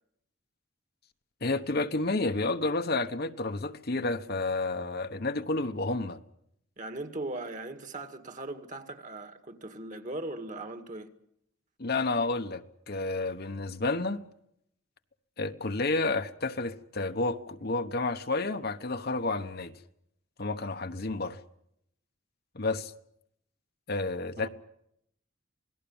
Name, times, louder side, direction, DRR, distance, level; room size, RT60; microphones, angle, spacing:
voice 1, 1.4-6.2 11.8-14.2 15.4-19.7 20.4-21.4 22.5-22.9 23.9-24.5, left 3 dB, 50° left, 1.1 m, -30 dB
voice 2, 6.8-11.1 24.4-24.5, right 2 dB, 40° right, 1.9 m, -39 dB
27.5 x 18.5 x 7.2 m
head